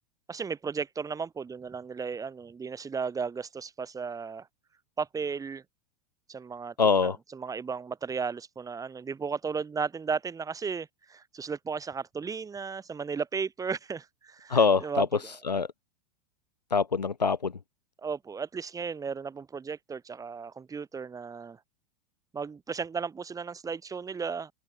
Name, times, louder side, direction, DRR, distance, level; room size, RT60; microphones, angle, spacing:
voice 1, 0.3-4.5 5.0-5.6 6.3-6.7 7.0-15.3 18.0-21.6 22.3-24.5, right 5 dB, 15° right, 4.7 m, -35 dB
voice 2, 6.8-7.2 14.5-15.7 16.7-17.5, left 5 dB, 85° left, 0.5 m, -24 dB
open air
figure-of-eight pair, 90°, 21 cm